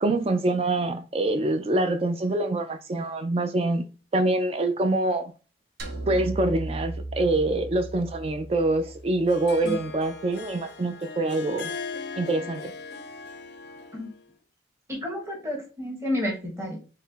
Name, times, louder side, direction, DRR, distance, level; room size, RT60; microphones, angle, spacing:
voice 1, 0.0-3.8 4.1-5.3 6.1-11.7 12.1-12.7, right 2 dB, 30° right, 0.3 m, -25 dB
sound 1, 5.8-10.2, right 2 dB, 55° right, 0.7 m, -37 dB
Harp, 8.9-14.2, left 4 dB, 55° left, 0.5 m, -39 dB
voice 2, 14.9-16.8, left 1 dB, 15° right, 1.1 m, -30 dB
4.2 x 2.0 x 3.9 m
head